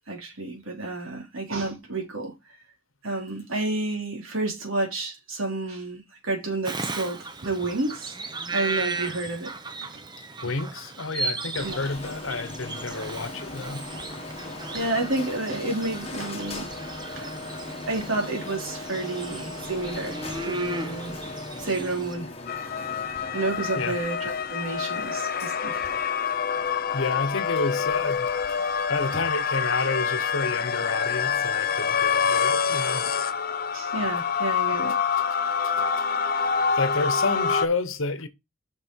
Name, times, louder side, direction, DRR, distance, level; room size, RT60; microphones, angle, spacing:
voice 1, 0.1-2.3 3.0-8.2 8.5-9.5 9.9-10.0 11.6-11.8 14.7-16.7 17.2-17.3 17.9-21.2 21.6-22.3 23.3-25.8 33.7-35.0, right 2 dB, 80° right, 3.4 m, -30 dB
Bird vocalization bird call bird song, 6.6-22.1, right 3 dB, 20° right, 0.8 m, -36 dB
voice 2, 10.4-13.9 23.7-24.0 25.0-25.1 26.9-28.3 28.9-33.0 35.8-35.9 36.7-38.3, left 3 dB, 75° left, 1.0 m, -30 dB
Printer, 11.5-29.2, left 2 dB, 30° left, 1.2 m, -39 dB
sound 1, 22.5-37.7, left 6 dB, 45° left, 0.6 m, -26 dB
6.4 x 6.2 x 4.6 m
head